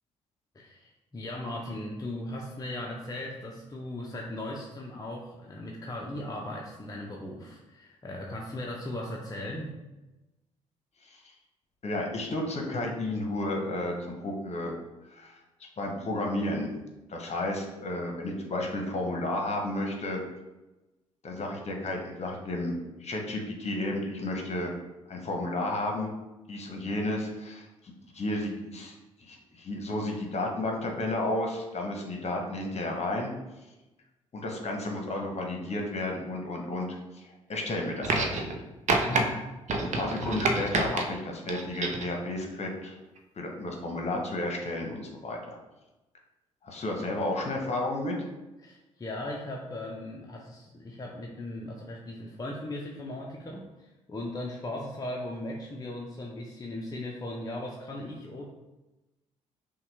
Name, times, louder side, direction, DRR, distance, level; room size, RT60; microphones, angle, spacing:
voice 1, 0.5-9.8 39.0-39.4 48.6-58.4, left 1 dB, 20° left, -2 dB, 0.7 m, -38 dB
voice 2, 11.8-14.7 15.1-15.4 15.8-16.7 17.1-20.2 21.2-22.7 23.0-24.7 25.1-26.1 26.5-33.3 34.3-38.5 39.8-43.0 43.4-45.6 46.6-48.1, left 1 dB, 40° left, 1 dB, 1.1 m, -32 dB
sound 1, 38.0-38.6 38.9-39.2 39.7-41.0 41.5-42.1 43.2-43.3, right 3 dB, 45° right, 0.7 m, -28 dB
5.6 x 2.4 x 3.4 m, 1.0 s
hypercardioid pair, 45°, 16 cm